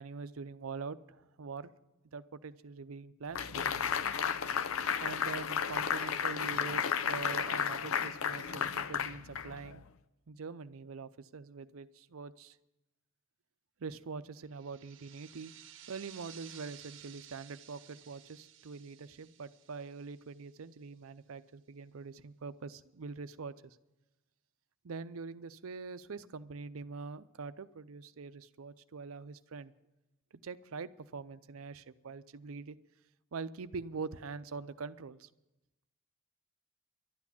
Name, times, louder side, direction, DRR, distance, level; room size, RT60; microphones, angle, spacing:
voice 1, 0.0-1.7 2.1-3.9 5.0-9.8 10.3-12.6 13.8-15.5 15.9-23.8 24.8-29.7 30.4-32.8 33.3-35.3, right 4 dB, 90° right, 14 dB, 0.6 m, -44 dB
sound 1, 3.4-9.8, left 7 dB, 90° left, 0.6 m, -33 dB
sound 2, 14.5-20.8, right 10 dB, 60° right, 0.9 m, -55 dB
12.0 x 8.4 x 9.9 m, 0.96 s
head